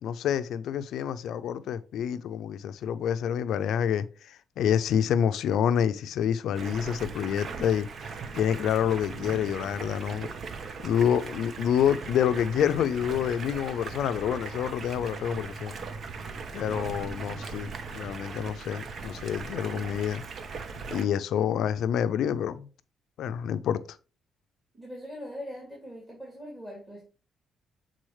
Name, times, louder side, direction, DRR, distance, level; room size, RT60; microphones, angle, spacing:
voice 1, 0.0-7.9 8.3-10.3 10.8-15.7 16.5-20.2 20.9-22.7 23.2-23.8, left 9 dB, 75° left, 0.4 m, -27 dB
Stream, 6.5-21.0, right 4 dB, 50° right, 0.8 m, -39 dB
voice 2, 24.7-27.1, equal, 15° right, 2.5 m, -41 dB
7.7 x 3.8 x 3.2 m
cardioid pair, 90°, 0 cm